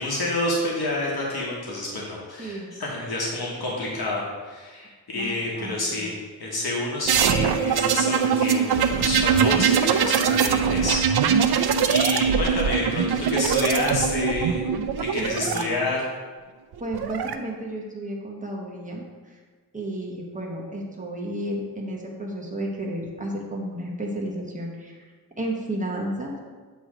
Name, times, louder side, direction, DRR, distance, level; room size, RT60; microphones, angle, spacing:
voice 1, 0.0-11.6 11.9-14.6 15.0-16.1, left 2 dB, 75° left, -4 dB, 1.2 m, -28 dB
voice 2, 2.4-2.7 5.1-6.1 15.2-15.8 16.8-19.4 19.7-25.1 25.4-26.4, right 1 dB, 20° right, -2 dB, 1.1 m, -32 dB
sound 1, 7.1-15.6 16.7-17.3, right 7 dB, 85° right, 0.5 m, -22 dB
7.9 x 3.1 x 4.9 m, 1.4 s
wide cardioid pair, 130°, 37 cm